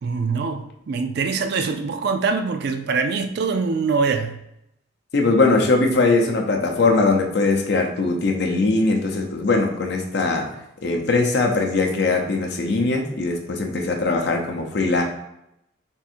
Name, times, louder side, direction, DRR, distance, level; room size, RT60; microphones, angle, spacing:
voice 1, 0.0-4.3, right 4 dB, 55° right, 8 dB, 0.4 m, -23 dB
voice 2, 5.1-10.4 10.8-15.0, left 3 dB, 60° left, 2 dB, 0.6 m, -20 dB
3.6 x 2.6 x 4.3 m, 0.81 s
head